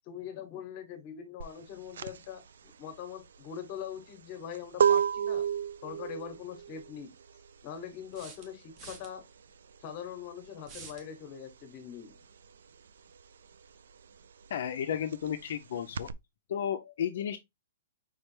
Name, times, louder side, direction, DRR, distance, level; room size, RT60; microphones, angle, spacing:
voice 1, 0.1-5.5 5.8-7.1 7.6-9.2 9.8-12.1, left 8 dB, 25° left, 1.0 m, -42 dB
sound 1, 1.4-11.6 11.9-16.1, right 8 dB, 70° right, 0.4 m, -32 dB
sound 2, 6.1-6.2 8.1-9.1 10.6-11.1, right 5 dB, 20° right, 0.8 m, -48 dB
voice 2, 14.5-16.1 16.5-17.4, left 9 dB, 50° left, 0.5 m, -33 dB
5.1 x 3.2 x 3.1 m
hypercardioid pair, 175°, 0 cm